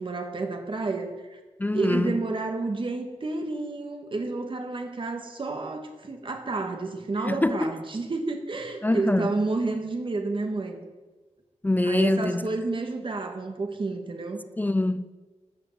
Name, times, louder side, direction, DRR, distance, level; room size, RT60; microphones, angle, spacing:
voice 1, 0.0-1.4 1.7-10.8 11.8-14.4, right 3 dB, 45° right, 1.8 m, -30 dB
voice 2, 1.6-2.2 7.3-7.7 8.8-9.3 11.6-12.5 14.6-15.1, left 2 dB, 15° left, 0.4 m, -24 dB
12.0 x 6.7 x 7.9 m
wide cardioid pair, 125°, 12 cm